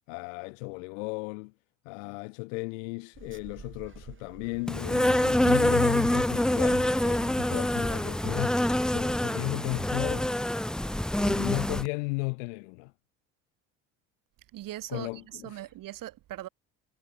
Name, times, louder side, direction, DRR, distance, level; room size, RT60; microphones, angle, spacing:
voice 1, 0.1-1.5 1.9-8.6 8.9-10.3 11.2-12.9 14.9-15.6, left 31 dB, 85° left, 1.6 m, -35 dB
sound 1, 3.1-8.6, right 6 dB, 30° right, 6.9 m, -50 dB
Insect, 4.7-11.9, left 1 dB, ahead, 0.3 m, -26 dB
voice 2, 14.5-16.5, right 14 dB, 60° right, 3.1 m, -40 dB
supercardioid pair, 80°, 37 cm